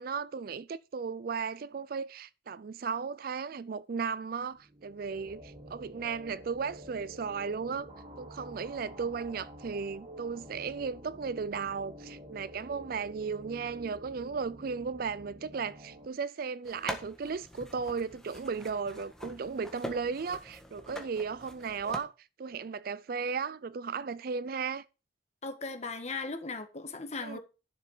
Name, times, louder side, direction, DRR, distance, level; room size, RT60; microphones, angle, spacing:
voice 1, 0.0-7.9 8.2-22.1 22.4-24.8 27.2-27.4, right 5 dB, 50° right, 0.4 m, -35 dB
sound 1, 4.5-16.1, right 1 dB, 30° right, 1.5 m, -48 dB
sound 2, 16.6-22.0, equal, 5° left, 1.6 m, -44 dB
voice 2, 25.4-27.4, left 3 dB, 35° left, 1.5 m, -37 dB
11.0 x 6.7 x 4.9 m
head